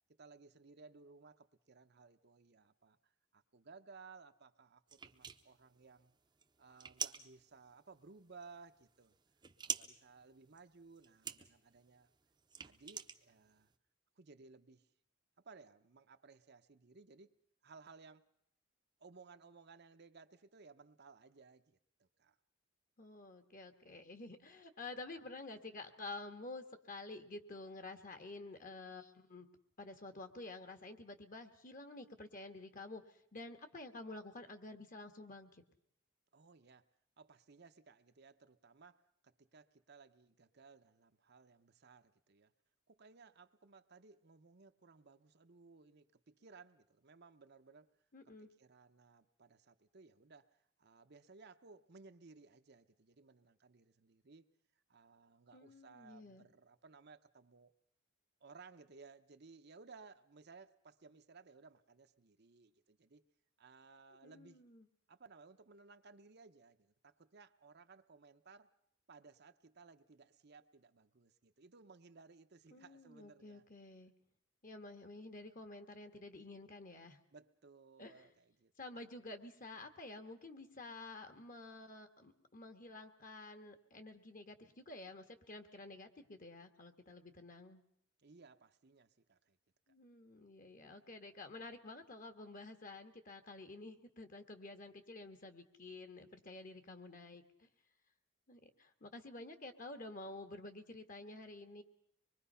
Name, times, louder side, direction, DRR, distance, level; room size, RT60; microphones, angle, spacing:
voice 1, 0.2-6.1 6.6-9.1 9.6-12.1 12.6-13.7 14.2-14.9 15.4-17.3 17.6-18.2 19.0-22.4 36.3-36.8 37.2-42.5 42.9-47.9 48.6-54.5 54.9-57.7 58.4-63.2 63.6-64.6 65.1-68.7 69.1-73.7 77.3-78.7 79.0-79.4 88.2-89.6 89.9-90.0, right 4 dB, 50° right, 8 dB, 0.8 m, -60 dB
sound 1, 4.9-13.8, right 7 dB, 20° right, 0.8 m, -47 dB
voice 2, 23.0-29.5 29.8-35.6 48.1-48.5 55.5-56.5 64.2-64.9 72.7-74.1 74.6-77.2 78.0-78.3 78.8-87.8 89.9-97.7 98.5-101.8, left 2 dB, 40° left, 8 dB, 1.6 m, -50 dB
25.0 x 22.0 x 5.7 m, 0.69 s
head